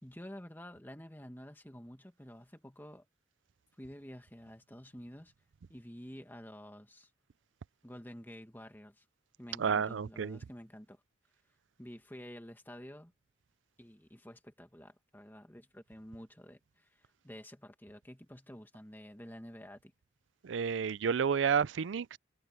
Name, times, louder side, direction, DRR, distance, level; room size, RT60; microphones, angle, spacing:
voice 1, 0.0-3.1 3.8-5.3 5.7-7.1 7.8-9.1 9.4-11.0 11.8-13.1 13.8-19.9, equal, 10° left, 1.9 m, -50 dB
voice 2, 9.6-10.4 20.4-22.2, right 6 dB, 80° right, 0.4 m, -30 dB
head